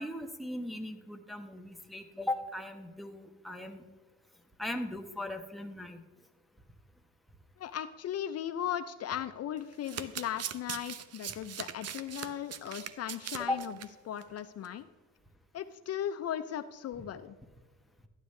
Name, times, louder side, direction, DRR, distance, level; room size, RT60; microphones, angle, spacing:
voice 1, 0.0-3.8 4.6-6.0 13.5-13.6, left 1 dB, ahead, 3 dB, 1.0 m, -38 dB
voice 2, 7.6-13.7 14.0-14.9 15.5-17.3, left 10 dB, 55° left, 10 dB, 0.5 m, -37 dB
Domestic sounds home sounds, 9.6-13.9 14.2-14.4 14.6-14.7, right 9 dB, 55° right, 0.7 m, -41 dB
13.0 x 9.7 x 3.2 m, 1.3 s
cardioid pair, 90°, 30 cm